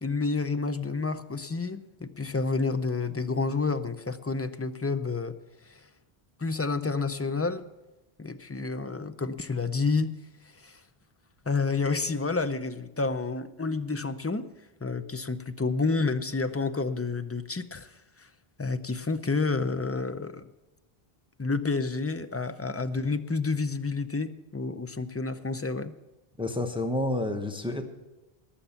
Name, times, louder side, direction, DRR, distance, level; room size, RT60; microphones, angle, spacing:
voice 1, 0.0-5.4 5.6-5.9 6.4-7.6 8.2-10.8 11.4-14.5 14.8-18.3 18.6-20.5 21.4-25.9, left 4 dB, 20° left, 11 dB, 0.4 m, -29 dB
voice 2, 26.4-27.9, left 1 dB, 5° right, 6 dB, 0.9 m, -29 dB
19.0 x 7.3 x 5.7 m, 1.1 s
omnidirectional pair, 1.0 m